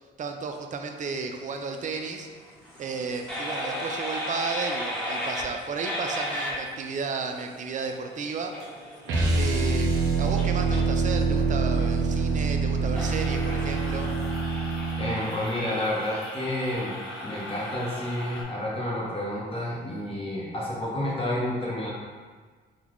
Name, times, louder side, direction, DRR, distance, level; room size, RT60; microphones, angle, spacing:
voice 1, 0.2-2.3 2.8-8.5 9.3-14.1, right 5 dB, 40° right, 4 dB, 0.4 m, -33 dB
sound 1, 1.5-18.4, equal, 5° left, 1.1 m, -36 dB
sound 2, 9.0-15.2, right 4 dB, 75° right, 0.7 m, -25 dB
voice 2, 15.0-17.0 17.2-21.9, left 1 dB, 30° left, -6 dB, 0.9 m, -30 dB
3.8 x 2.3 x 3.0 m, 1.5 s
cardioid pair, 90°, 20 cm